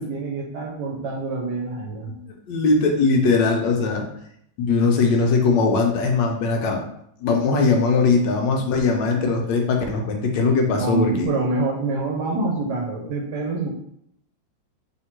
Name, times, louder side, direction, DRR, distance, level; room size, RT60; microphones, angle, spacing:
voice 1, 0.0-2.1 10.8-13.7, right 3 dB, 65° right, 0 dB, 1.1 m, -26 dB
voice 2, 2.5-4.0 4.6-6.8 7.2-11.3, left 4 dB, 70° left, 2 dB, 1.2 m, -20 dB
3.6 x 2.8 x 4.4 m, 0.72 s
omnidirectional pair, 2.2 m